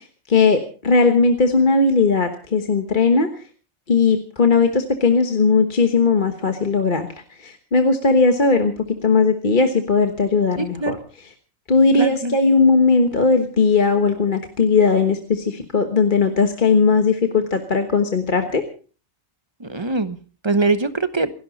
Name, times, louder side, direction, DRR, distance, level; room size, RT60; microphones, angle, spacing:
voice 1, 0.0-3.3 3.9-7.1 7.4-8.7 9.0-11.0 11.7-18.6, left 4 dB, 45° left, 6 dB, 1.4 m, -18 dB
voice 2, 10.5-10.9 12.0-12.4 19.6-20.2 20.4-21.3, right 3 dB, 25° right, 12 dB, 1.0 m, -22 dB
28.0 x 11.5 x 4.1 m, 0.39 s
omnidirectional pair, 1.2 m